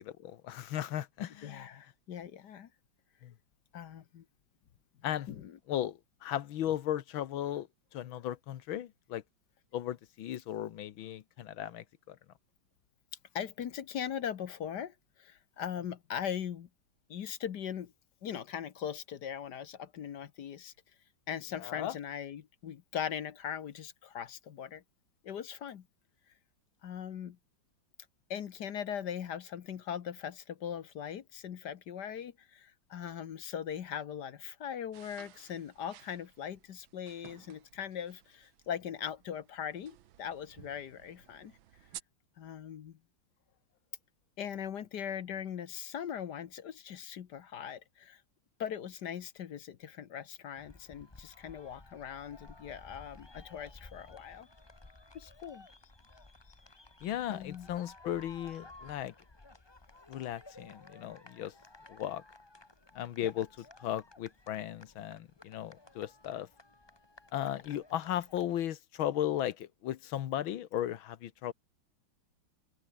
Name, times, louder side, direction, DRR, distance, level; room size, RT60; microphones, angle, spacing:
voice 1, 0.2-1.7 3.2-3.3 5.0-5.3 5.7-7.7 7.9-9.2 9.7-12.2 21.6-22.0 57.0-59.1 60.1-61.5 61.9-62.2 63.0-63.5 63.8-66.5 67.3-71.5, left 11 dB, 85° left, 1.8 m, -36 dB
voice 2, 1.4-2.7 3.7-4.2 5.3-5.6 13.3-16.7 17.1-17.9 18.2-20.7 21.3-24.8 25.2-25.8 26.8-27.4 28.3-41.6 42.4-43.0 44.4-48.2 48.6-54.5 55.1-55.7 57.3-57.7 63.2-63.3, left 8 dB, 60° left, 1.6 m, -40 dB
sound 1, 34.9-42.0, right 12 dB, 80° right, 1.7 m, -55 dB
Winter Festival Fireworks, 50.6-68.6, left 2 dB, 15° left, 1.4 m, -56 dB
omnidirectional pair, 2.1 m